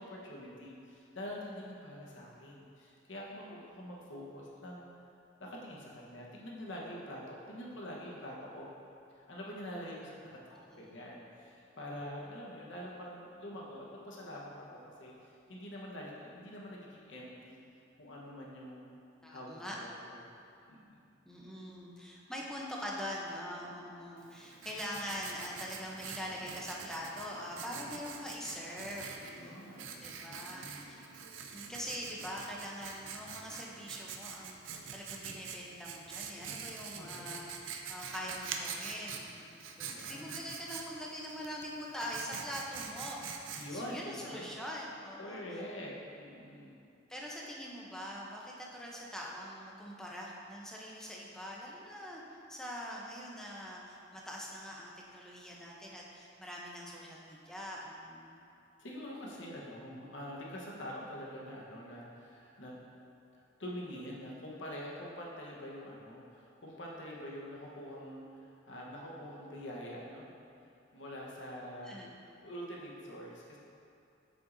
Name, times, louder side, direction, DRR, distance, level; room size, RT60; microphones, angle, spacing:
voice 1, 0.0-4.9 5.4-8.7 9.3-17.6 18.0-18.9 19.3-20.2 20.7-21.0 27.7-28.0 29.3-30.9 36.9-37.4 39.8-40.5 43.5-44.5 45.2-46.7 58.8-62.8 63.6-70.3 70.9-72.1 72.4-73.6, equal, 70° left, -4 dB, 1.2 m, -45 dB
voice 2, 19.2-19.8 21.2-29.7 30.0-31.0 31.5-39.5 39.8-45.4 47.1-52.2 52.5-58.4 71.8-72.1, equal, 5° left, -4 dB, 0.7 m, -43 dB
Writing, 24.2-44.0, right 6 dB, 80° right, 0.5 m, -45 dB
7.7 x 6.4 x 2.7 m, 2.7 s
head